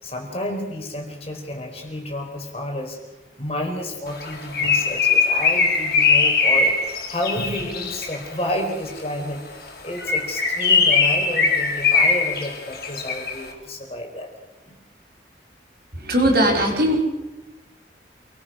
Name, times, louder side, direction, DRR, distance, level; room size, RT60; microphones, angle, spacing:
voice 1, 0.0-3.0 3.4-14.3 14.7-14.8, left 1 dB, 35° left, 2 dB, 4.4 m, -30 dB
Bird, 4.2-8.3 9.9-13.4, left 4 dB, 60° left, 5.1 m, -20 dB
voice 2, 16.0-17.0, equal, 60° right, 1 dB, 5.3 m, -19 dB
28.0 x 20.5 x 5.9 m, 1.0 s
head